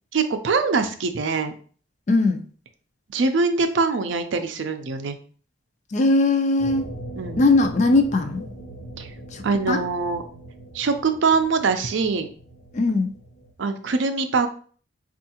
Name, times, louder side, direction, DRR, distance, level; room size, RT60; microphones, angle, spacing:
voice 1, 0.1-1.5 3.1-5.2 7.2-7.4 9.0-9.1 9.4-10.2 10.7-12.3 13.6-14.5, right 4 dB, 70° right, 8 dB, 0.4 m, -23 dB
voice 2, 2.1-2.4 5.9-7.0 7.4-8.5 9.3-9.8 12.7-13.1, left 2 dB, 35° left, 6 dB, 0.4 m, -20 dB
sound 1, 6.6-13.5, right 1 dB, 60° left, 0.8 m, -40 dB
4.5 x 2.4 x 2.8 m, 0.43 s
head